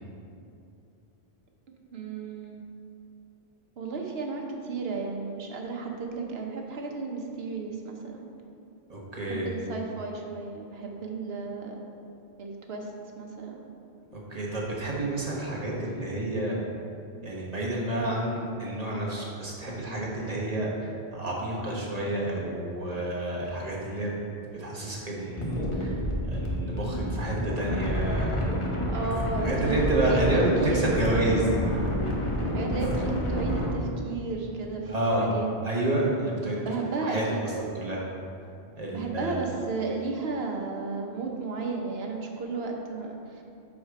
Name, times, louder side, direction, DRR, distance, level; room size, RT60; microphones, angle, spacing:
voice 1, 1.9-2.6 3.8-8.2 9.2-11.8 12.4-12.9 13.2-13.6 28.9-30.2 30.6-30.9 32.5-34.9 35.2-35.5 36.6-37.4 38.9-43.4, right 4 dB, 65° right, 1 dB, 1.1 m, -33 dB
voice 2, 8.9-9.5 14.1-16.6 17.2-24.1 24.4-26.0 26.2-28.9 29.4-31.6 34.8-35.3 35.6-36.6 37.0-38.0 38.7-39.4, right 1 dB, 35° right, -4 dB, 1.2 m, -29 dB
sound 1, 25.4-33.7, equal, 30° left, 0.9 m, -29 dB
6.4 x 4.9 x 4.8 m, 2.6 s
omnidirectional pair, 1.1 m